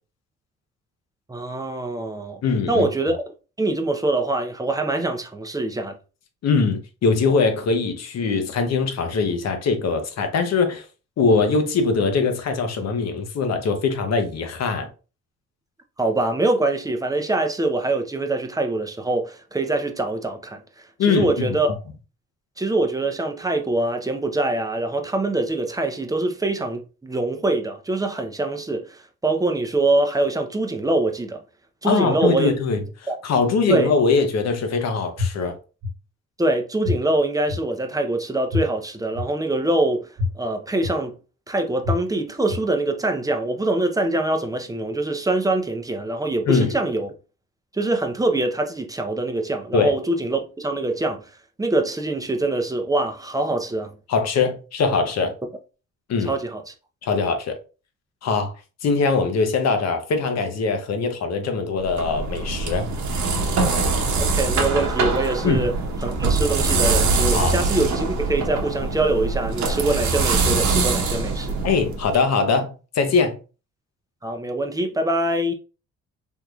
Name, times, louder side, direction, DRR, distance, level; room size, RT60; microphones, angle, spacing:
voice 1, 1.3-2.4 2.7-3.3 3.6-6.0 16.0-20.6 21.1-21.8 22.6-31.4 31.8-32.5 33.1-33.2 33.7-33.9 36.4-40.1 40.4-41.2 41.5-47.1 47.7-51.2 51.6-53.9 56.2-56.7 64.2-65.7 66.0-71.6 74.2-75.5, right 2 dB, 10° right, 0.6 m, -24 dB
voice 2, 2.4-2.9 6.4-10.8 11.2-14.9 21.0-21.6 31.8-32.8 33.2-35.6 46.5-46.8 49.7-49.9 54.1-55.4 56.1-56.3 57.0-57.6 58.2-58.5 58.8-62.9 65.4-65.7 67.3-67.5 71.6-73.4, left 4 dB, 60° left, 0.8 m, -22 dB
sound 1, 35.2-35.3 35.8-35.9 36.8-36.9 37.5-37.6 38.5-38.6 39.2-39.3 40.2-40.3 40.8-40.9 41.8-41.9 42.5-42.6, left 4 dB, 40° right, 1.0 m, -23 dB
sound 2, 61.8-72.2, right 3 dB, 70° right, 0.9 m, -23 dB
3.6 x 2.9 x 2.3 m
cardioid pair, 90°, 30 cm